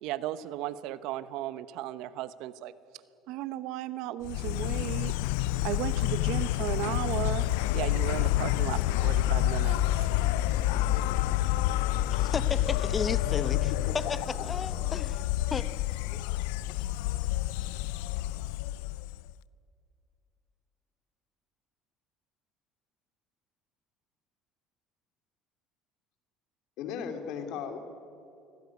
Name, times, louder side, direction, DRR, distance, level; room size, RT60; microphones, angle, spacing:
voice 1, 0.0-2.7 3.3-5.1 5.6-7.5 7.7-10.1, right 13 dB, 75° right, 14 dB, 1.0 m, -35 dB
Insect, 4.2-19.3, left 15 dB, 85° left, 0.4 m, -28 dB
sound 1, 8.1-15.0, right 3 dB, 40° right, 7.5 m, -46 dB
voice 2, 12.1-13.6 13.9-14.0 14.4-15.1 15.5-15.7, left 5 dB, 30° left, 14 dB, 1.0 m, -33 dB
voice 3, 26.8-27.8, left 7 dB, 70° left, 6 dB, 2.9 m, -36 dB
24.0 x 16.0 x 9.6 m, 2.5 s
supercardioid pair, 95°, 0 cm